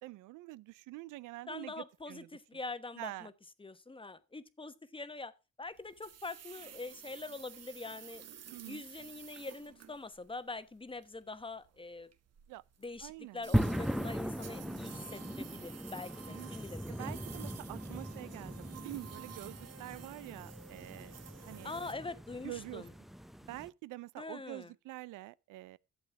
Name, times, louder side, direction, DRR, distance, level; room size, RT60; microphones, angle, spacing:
voice 1, 0.0-2.3 3.0-3.3 8.5-8.8 12.5-12.6 13.0-13.4 16.3-16.5 16.9-21.1 21.4-21.7 22.4-22.8 23.5-25.8, right 18 dB, 85° right, 0.5 m, -46 dB
voice 2, 1.5-3.3 3.6-5.3 5.6-8.2 8.7-12.1 12.8-17.1 21.6-22.9 24.2-24.7, left 3 dB, 15° left, 1.1 m, -44 dB
sound 1, 5.7-21.9, right 8 dB, 55° right, 1.3 m, -52 dB
sound 2, 13.5-23.7, equal, ahead, 0.6 m, -39 dB
12.0 x 7.6 x 4.7 m
cardioid pair, 90°, 30 cm